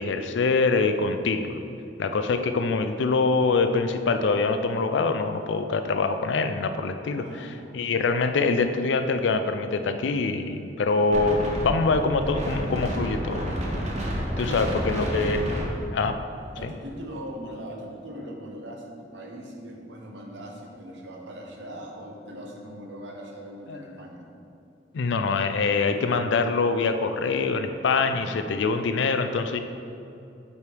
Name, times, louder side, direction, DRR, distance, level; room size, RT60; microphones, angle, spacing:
voice 1, 0.0-1.6 2.0-7.2 7.7-13.5 14.4-15.4 15.9-16.2 16.6-16.7 23.7-23.8 24.9-29.6, left 4 dB, 80° left, 8 dB, 0.4 m, -24 dB
voice 2, 7.1-8.0 14.5-15.2 16.5-24.3, equal, 75° right, 0 dB, 1.0 m, -40 dB
Wind, 11.1-16.6, equal, 40° right, 1.0 m, -30 dB
8.2 x 3.4 x 4.6 m, 2.6 s
head